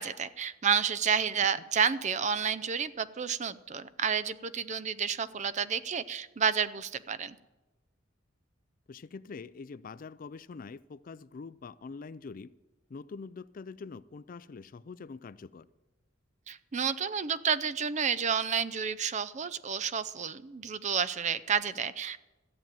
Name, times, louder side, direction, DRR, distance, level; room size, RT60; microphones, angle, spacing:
voice 1, 0.0-7.4 16.5-22.2, right 7 dB, 40° right, 16 dB, 0.5 m, -30 dB
voice 2, 8.9-12.5 12.9-15.7, left 4 dB, 45° left, 18 dB, 0.4 m, -44 dB
14.0 x 7.5 x 9.1 m, 1.1 s
head